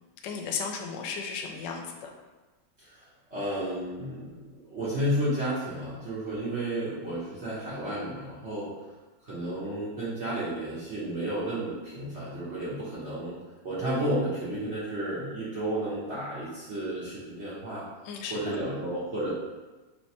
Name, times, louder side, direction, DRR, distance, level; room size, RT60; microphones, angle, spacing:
voice 1, 0.2-2.1 18.0-18.6, left 5 dB, 75° left, 2 dB, 1.2 m, -35 dB
voice 2, 2.8-8.7 9.2-13.4 13.6-17.9 18.3-19.3, right 1 dB, 45° right, -9 dB, 1.0 m, -32 dB
3.3 x 3.1 x 4.2 m, 1.2 s
omnidirectional pair, 2.2 m